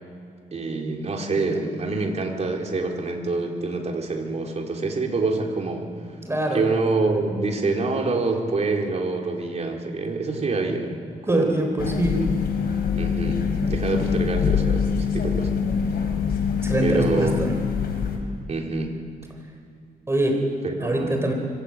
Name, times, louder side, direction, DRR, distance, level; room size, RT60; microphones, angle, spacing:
voice 1, 0.5-5.9 6.5-11.0 11.2-11.6 13.0-15.6 16.8-17.3 18.5-18.9 20.6-21.2, right 3 dB, 45° right, 1 dB, 3.8 m, -26 dB
voice 2, 6.3-6.7 11.3-12.2 16.6-17.6 20.1-20.5 20.8-21.3, right 1 dB, 15° right, 3 dB, 3.7 m, -23 dB
sound 1, 11.8-18.2, left 6 dB, 80° left, 3.9 m, -24 dB
25.0 x 16.5 x 8.8 m, 2.4 s
cardioid pair, 105°, 16 cm